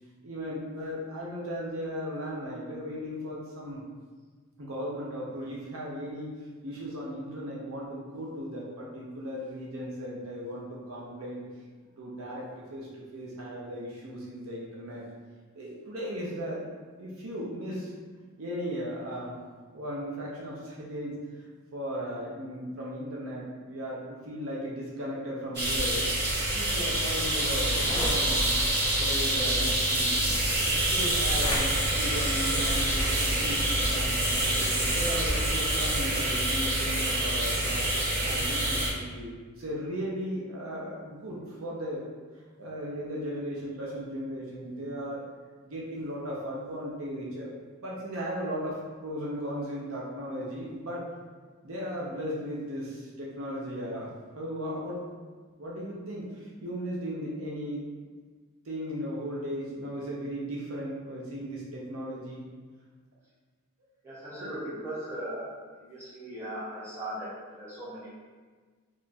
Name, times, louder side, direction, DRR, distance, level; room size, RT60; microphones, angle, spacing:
voice 1, 0.2-3.8 4.6-6.3 6.6-11.4 12.0-15.0 15.5-16.7 17.0-17.9 18.4-19.4 19.7-21.1 21.7-26.0 26.5-28.6 29.0-30.3 30.7-37.9 38.3-42.0 42.6-45.2 45.6-47.5 47.8-51.1 51.6-55.0 55.6-57.8 58.7-62.4, equal, 65° right, -5 dB, 0.6 m, -36 dB
sound 1, 25.5-38.9, right 1 dB, 45° right, 1.0 m, -27 dB
sound 2, 27.3-35.5, left 1 dB, 20° left, 0.4 m, -37 dB
voice 2, 64.0-68.1, right 1 dB, 10° right, -11 dB, 1.2 m, -38 dB
3.1 x 2.3 x 4.0 m, 1.4 s
head